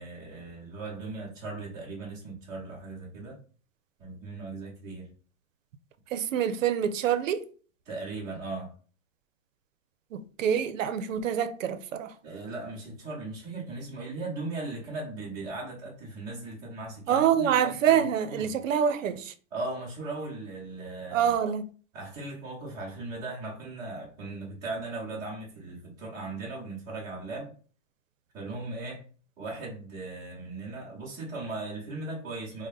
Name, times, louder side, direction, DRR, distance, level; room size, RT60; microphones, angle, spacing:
voice 1, 0.0-3.4 4.0-5.1 7.8-8.7 12.2-18.6 19.5-21.3 21.9-27.5 28.3-29.0 29.4-32.7, right 2 dB, 10° right, 0.7 m, -38 dB
voice 2, 6.1-7.4 10.1-12.1 17.1-19.3 21.1-21.6, right 9 dB, 85° right, 0.6 m, -26 dB
3.8 x 2.1 x 3.8 m
supercardioid pair, 175°, 38 cm